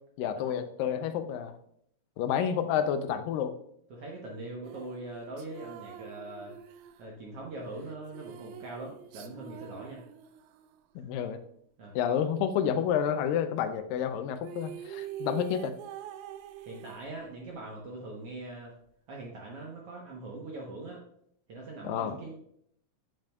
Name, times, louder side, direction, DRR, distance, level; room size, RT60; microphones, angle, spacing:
voice 1, 0.2-1.5 2.2-3.5 11.0-11.4 12.0-15.7 21.8-22.2, left 8 dB, 85° left, 9 dB, 2.3 m, -29 dB
voice 2, 3.9-6.5 7.0-10.0 10.9-11.0 11.8-12.0 16.6-18.7 19.1-21.0 21.5-22.4, right 2 dB, 65° right, -2 dB, 1.5 m, -42 dB
sound 1, 4.6-10.8 14.1-14.2 14.4-17.6, right 10 dB, 85° right, 1.7 m, -45 dB
8.9 x 7.5 x 2.3 m, 0.70 s
omnidirectional pair, 4.0 m